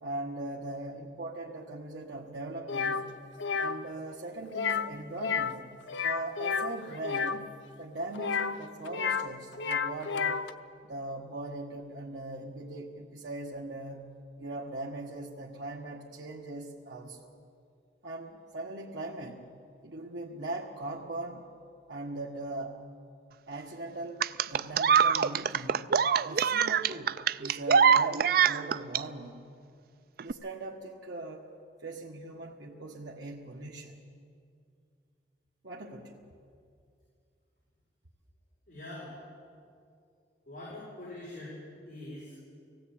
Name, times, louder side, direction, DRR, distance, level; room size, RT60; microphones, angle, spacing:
voice 1, 0.0-3.1 3.6-5.7 6.0-10.4 10.8-14.1 14.4-17.3 18.0-19.4 19.8-21.5 21.9-22.8 23.5-25.9 26.2-29.4 30.2-31.5 31.8-34.0 35.6-36.2, right 2 dB, 75° right, -2 dB, 1.3 m, -40 dB
sound 1, 2.7-3.0 3.4-3.7 4.5-4.9 5.2-5.6 5.9-7.4 8.1-9.3 9.5-10.5, left 6 dB, 90° left, 0.7 m, -31 dB
sound 2, 24.2-29.0 30.2-30.3, right 7 dB, 55° right, 0.4 m, -24 dB
voice 2, 38.7-39.2 40.5-41.6 41.8-42.4, left 1 dB, 50° left, -6 dB, 5.2 m, -43 dB
18.0 x 16.5 x 8.8 m, 2.4 s
head